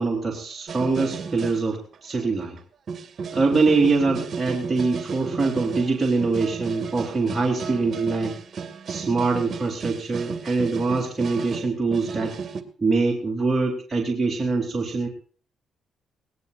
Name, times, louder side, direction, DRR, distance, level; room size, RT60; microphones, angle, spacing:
voice 1, 0.0-2.6 3.3-8.4 8.9-12.3 12.8-15.1, right 3 dB, 20° right, -1 dB, 3.9 m, -24 dB
sound 1, 0.7-1.6 1.9-2.6 2.9-12.6, right 5 dB, 50° right, 2.4 m, -34 dB
21.5 x 19.0 x 2.7 m, 0.42 s
cardioid pair, 90°, 0 cm